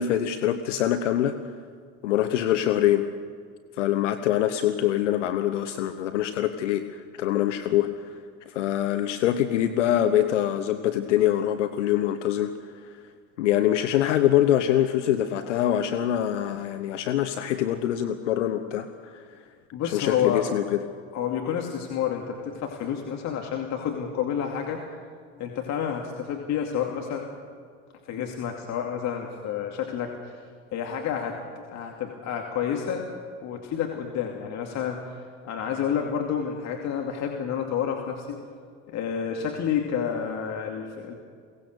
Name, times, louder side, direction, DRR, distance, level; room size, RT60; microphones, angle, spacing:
voice 1, 0.0-1.3 2.0-3.1 3.8-8.2 8.5-12.9 13.4-19.2 19.9-20.8, left 11 dB, 70° left, 9 dB, 1.1 m, -24 dB
voice 2, 19.7-20.4 21.1-24.8 25.4-27.2 28.1-30.4 30.7-33.0 33.4-38.4 38.9-41.1, left 8 dB, 45° left, 2 dB, 2.6 m, -29 dB
22.5 x 18.0 x 6.8 m, 2.1 s
hypercardioid pair, 75°, 37 cm